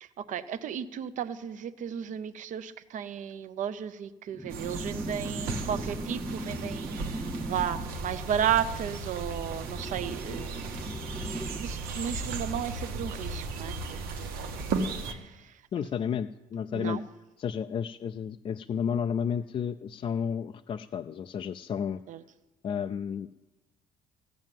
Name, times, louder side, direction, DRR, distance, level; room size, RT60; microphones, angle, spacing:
voice 1, 0.0-10.7 11.6-14.8 15.1-15.9 16.7-17.0 22.1-22.2, right 9 dB, 55° right, 13 dB, 0.7 m, -34 dB
sound 1, 4.3-7.9 9.5-11.6, right 1 dB, ahead, 0.7 m, -38 dB
sound 2, 4.5-15.1, right 3 dB, 90° right, 1.3 m, -36 dB
voice 2, 15.7-17.0 17.4-22.0 22.6-23.3, left 7 dB, 35° left, 8 dB, 0.4 m, -32 dB
14.0 x 7.4 x 9.1 m, 1.1 s
cardioid pair, 120°, 15 cm